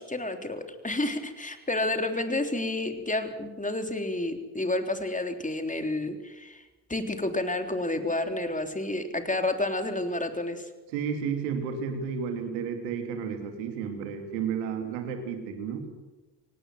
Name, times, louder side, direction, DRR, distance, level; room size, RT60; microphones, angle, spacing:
voice 1, 0.0-10.7, left 2 dB, 15° left, 6 dB, 3.7 m, -30 dB
voice 2, 10.9-15.9, right 6 dB, 85° right, 6 dB, 3.1 m, -32 dB
24.5 x 18.5 x 7.8 m, 1.1 s
hypercardioid pair, 45°, 49 cm